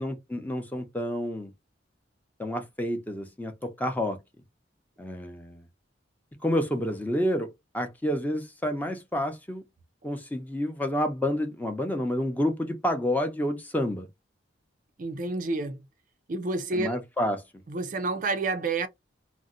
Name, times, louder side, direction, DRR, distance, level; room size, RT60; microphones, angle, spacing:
voice 1, 0.0-1.5 2.4-4.2 5.0-5.6 6.4-9.6 10.0-14.1 16.8-17.4, equal, 10° left, 0.6 m, -29 dB
voice 2, 15.0-15.8 16.3-17.0 17.7-18.9, right 3 dB, 45° right, 0.4 m, -29 dB
2.6 x 2.1 x 3.7 m
head